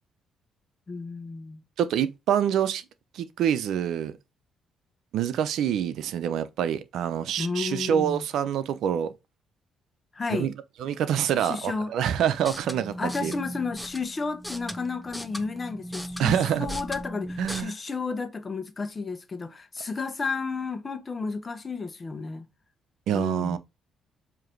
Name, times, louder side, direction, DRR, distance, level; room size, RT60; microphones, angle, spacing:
voice 1, 0.9-1.6 7.4-8.3 10.1-10.5 11.4-11.9 13.0-22.5 23.1-23.6, left 4 dB, 30° left, 1.1 m, -32 dB
voice 2, 1.8-2.8 3.1-4.2 5.1-9.1 10.3-10.5 10.8-12.9 13.2-13.3 16.2-16.7 17.4-17.7 23.1-23.6, right 9 dB, 75° right, 0.8 m, -26 dB
sound 1, 12.3-17.6, equal, 5° left, 0.8 m, -38 dB
7.5 x 3.0 x 4.5 m
cardioid pair, 85°, 0 cm